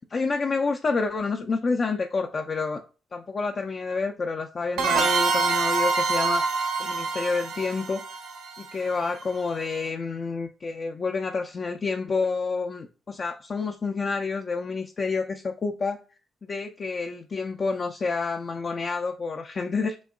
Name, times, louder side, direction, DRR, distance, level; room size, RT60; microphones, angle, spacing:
voice 1, 0.1-2.8 3.1-6.4 6.8-8.0 8.6-16.0 16.5-20.0, left 4 dB, 40° left, 0.5 m, -28 dB
sound 1, 4.8-9.3, right 4 dB, 65° right, 0.7 m, -26 dB
6.2 x 2.7 x 2.4 m
figure-of-eight pair, 40°, 0 cm